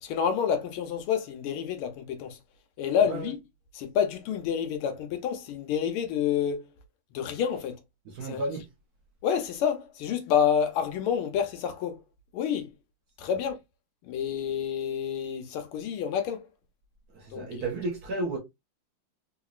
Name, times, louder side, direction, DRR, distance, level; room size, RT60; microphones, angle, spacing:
voice 1, 0.0-2.4 2.8-3.4 3.7-6.7 7.1-7.8 8.2-8.4 9.2-12.0 12.3-12.7 13.2-13.6 14.0-16.4 17.3-17.5, left 8 dB, 85° left, 1.7 m, -28 dB
voice 2, 8.1-8.7 17.1-18.4, right 2 dB, 60° right, 1.0 m, -33 dB
3.9 x 2.9 x 2.4 m
omnidirectional pair, 2.3 m